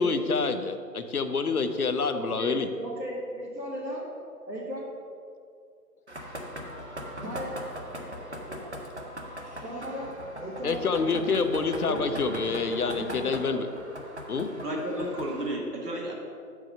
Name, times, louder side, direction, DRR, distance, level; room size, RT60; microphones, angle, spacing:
voice 1, 0.0-2.7 10.6-13.7 14.3-14.5, left 4 dB, 65° left, 9 dB, 0.7 m, -27 dB
voice 2, 2.1-4.1 4.5-4.8 7.2-7.5 8.5-8.7 9.6-11.4 11.8-12.0 12.4-13.3, equal, 85° right, -8 dB, 1.9 m, -37 dB
sound 1, 6.1-15.5, equal, 45° right, 0.7 m, -40 dB
voice 3, 14.6-16.1, right 1 dB, 70° right, -2 dB, 1.9 m, -32 dB
5.8 x 4.8 x 6.5 m, 2.4 s
figure-of-eight pair, 180°, 49 cm